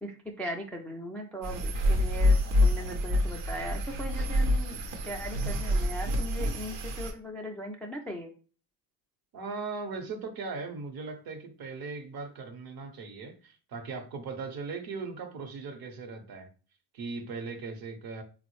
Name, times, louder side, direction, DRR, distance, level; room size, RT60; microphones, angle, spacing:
voice 1, 0.0-8.3, equal, 5° left, 0.3 m, -39 dB
sound 1, 1.4-7.1, left 1 dB, 85° right, 0.8 m, -27 dB
voice 2, 9.3-16.5 16.9-18.2, right 4 dB, 50° right, 0.8 m, -38 dB
3.8 x 2.0 x 3.0 m
supercardioid pair, 70°, 49 cm